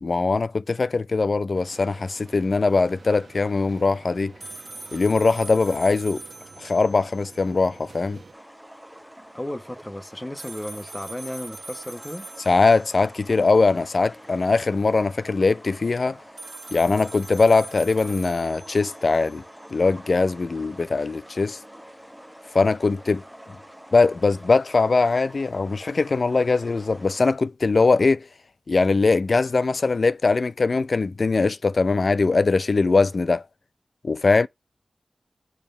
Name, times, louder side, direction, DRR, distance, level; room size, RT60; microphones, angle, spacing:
voice 1, 0.0-4.3 4.9-6.2 6.6-8.2 12.5-16.2 16.7-19.4 19.7-21.6 22.5-23.2 23.9-28.3 28.7-33.4 34.0-34.5, left 3 dB, 60° left, 0.4 m, -21 dB
sound 1, 1.5-8.3, right 3 dB, 65° right, 1.0 m, -49 dB
sound 2, 4.4-7.5 7.7-7.8 10.4-13.4 16.4-19.4, right 3 dB, 40° right, 0.6 m, -42 dB
sound 3, 8.3-27.2, equal, ahead, 0.8 m, -46 dB
voice 2, 9.3-12.3, left 1 dB, 15° left, 1.1 m, -34 dB
7.3 x 3.5 x 5.4 m
wide cardioid pair, 90°, 0 cm